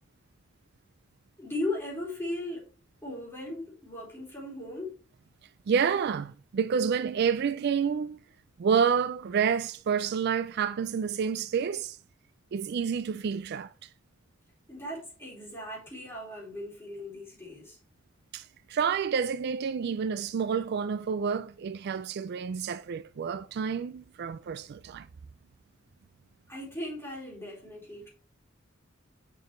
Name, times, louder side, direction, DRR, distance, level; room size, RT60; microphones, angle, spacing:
voice 1, 1.4-2.7 3.0-5.0 14.7-17.8 26.5-28.1, left 1 dB, 10° left, 4.2 m, -37 dB
voice 2, 5.7-8.2 8.6-12.0 12.5-13.9 18.3-25.1, right 6 dB, 55° right, 0.3 m, -29 dB
7.1 x 6.4 x 3.1 m
head